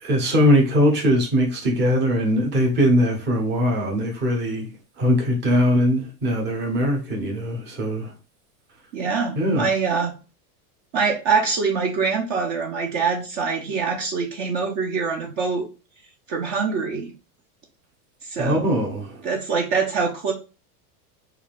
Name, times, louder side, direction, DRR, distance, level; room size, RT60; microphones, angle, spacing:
voice 1, 0.0-4.7 5.0-8.1 9.4-9.7 18.4-19.2, equal, 25° right, 0.9 m, -21 dB
voice 2, 8.9-10.1 10.9-15.6 16.3-17.1 18.2-18.7 19.2-20.3, right 5 dB, 50° right, 0.8 m, -24 dB
3.5 x 2.5 x 3.4 m
supercardioid pair, 150°, 45 cm